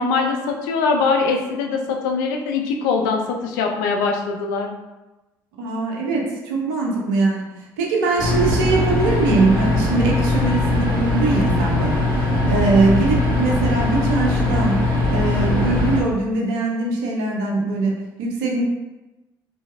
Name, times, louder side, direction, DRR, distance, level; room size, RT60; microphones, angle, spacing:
voice 1, 0.0-4.7 12.4-12.7, left 4 dB, 80° left, 3 dB, 0.4 m, -22 dB
voice 2, 5.6-12.1 12.5-14.8 15.1-18.6, right 3 dB, 80° right, -1 dB, 0.6 m, -21 dB
sound 1, 8.2-16.0, left 2 dB, 45° right, 1.2 m, -20 dB
3.0 x 2.6 x 2.4 m, 1.1 s
hypercardioid pair, 55°, 10 cm